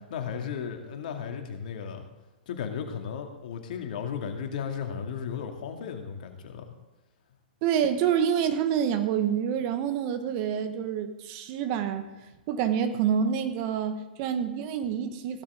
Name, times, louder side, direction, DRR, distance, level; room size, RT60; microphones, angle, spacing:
voice 1, 0.1-2.0 2.5-6.7, left 7 dB, 55° left, 4 dB, 2.2 m, -35 dB
voice 2, 7.6-12.0 12.5-15.4, right 8 dB, 40° right, 8 dB, 1.4 m, -27 dB
16.0 x 12.0 x 3.7 m, 1.1 s
hypercardioid pair, 120°, 5 cm